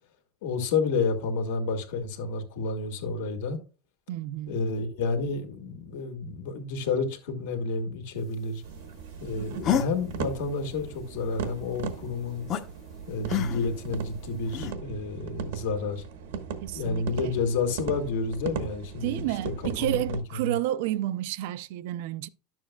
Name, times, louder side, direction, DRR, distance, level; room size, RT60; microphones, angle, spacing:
voice 1, 0.4-3.6 4.5-8.6 9.2-12.5 13.1-16.0 16.7-19.5 19.8-20.5, left 4 dB, 75° left, 1.8 m, -30 dB
voice 2, 4.1-4.6 16.6-17.4 19.0-22.3, right 15 dB, 60° right, 0.4 m, -31 dB
sound 1, 8.6-20.2, right 7 dB, 90° right, 1.1 m, -38 dB
sound 2, 9.6-9.9 12.5-12.6 13.3-13.8 14.5-14.7, left 9 dB, 35° left, 0.8 m, -27 dB
11.0 x 7.2 x 2.2 m
supercardioid pair, 165°, 0 cm